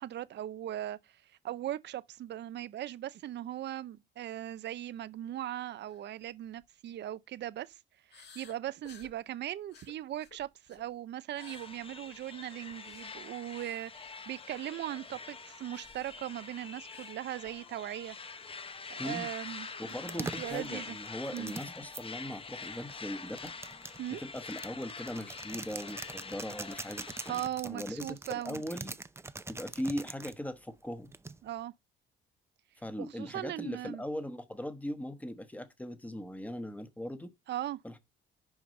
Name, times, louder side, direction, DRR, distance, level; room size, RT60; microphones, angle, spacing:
voice 1, 0.0-7.8 8.1-18.2 19.0-19.7 20.1-21.0 21.3-21.5 24.0-24.2 27.3-28.6 31.4-31.7 33.0-34.0 37.5-37.8, right 12 dB, 60° right, 0.5 m, -39 dB
sound 1, 5.9-6.1 6.5-6.6 8.1-9.2 9.7-10.9 11.3-11.7 12.8-13.1 13.5-13.8 15.7-16.2 16.9-17.2 17.5-17.6 18.0-18.1 19.7-20.7, left 7 dB, 60° left, 1.6 m, -56 dB
sound 2, 11.4-27.5, left 4 dB, 25° left, 0.8 m, -45 dB
voice 2, 19.8-23.5 24.2-29.0 29.5-31.1 32.8-37.3 37.8-37.9, equal, 5° left, 1.1 m, -39 dB
sound 3, 19.9-22.0 22.8-30.4 31.1-31.6, right 3 dB, 15° right, 0.5 m, -43 dB
5.2 x 4.8 x 5.2 m
cardioid pair, 90°, 20 cm